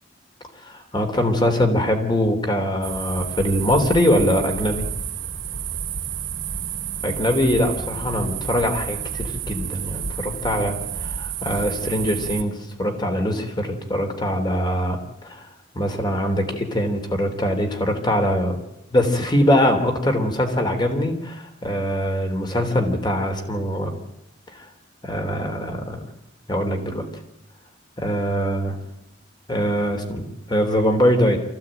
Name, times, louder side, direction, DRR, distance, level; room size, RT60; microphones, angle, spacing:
voice 1, 0.6-4.8 7.0-15.5 15.7-18.6 18.9-24.0 24.5-24.7 25.0-26.0 26.5-27.0 28.0-28.8 29.5-31.4, equal, 25° left, 5 dB, 3.4 m, -22 dB
sound 1, 2.8-12.4, right 7 dB, 85° right, 2.4 m, -30 dB
25.0 x 15.5 x 9.1 m, 0.86 s
head